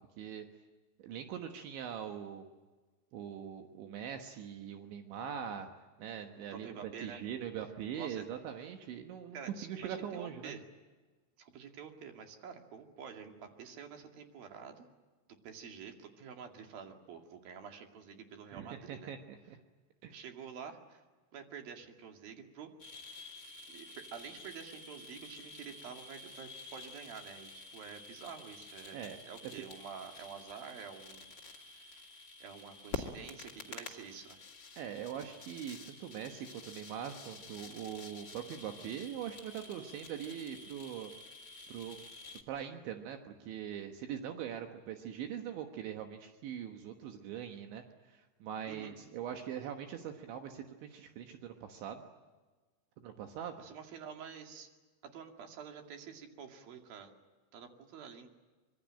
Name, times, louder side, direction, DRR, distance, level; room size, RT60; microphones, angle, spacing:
voice 1, 1.0-2.4 3.1-5.7 6.0-10.6 18.5-19.6 20.0-20.2 28.9-29.2 34.8-41.1 41.7-42.0 42.5-52.0 53.0-53.6, right 9 dB, 75° right, 5 dB, 3.5 m, -42 dB
voice 2, 6.5-7.2 7.9-8.2 9.3-10.7 11.4-14.9 15.3-19.1 20.1-21.0 21.3-22.7 23.1-23.3 23.7-32.0 32.4-34.4 48.7-49.0 53.6-54.7 55.0-57.1 57.5-58.3, right 7 dB, 55° right, 4 dB, 3.7 m, -48 dB
sound 1, 22.8-42.4, left 4 dB, 35° left, 1.7 m, -49 dB
25.0 x 23.0 x 8.9 m, 1.3 s
omnidirectional pair, 5.6 m